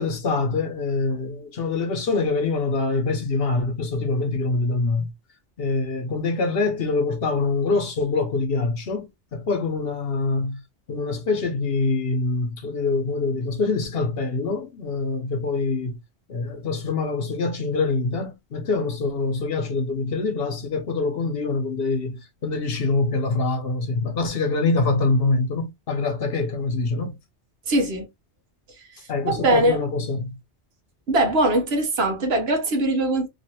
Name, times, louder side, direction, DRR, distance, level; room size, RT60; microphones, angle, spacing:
voice 1, 0.0-5.1 5.6-10.6 10.9-16.0 16.3-27.2 29.1-30.4, left 3 dB, 60° left, 0.9 m, -25 dB
voice 2, 27.7-28.1 29.2-29.8 31.1-33.3, right 2 dB, 60° right, 1.1 m, -21 dB
3.2 x 2.4 x 2.7 m
omnidirectional pair, 1.2 m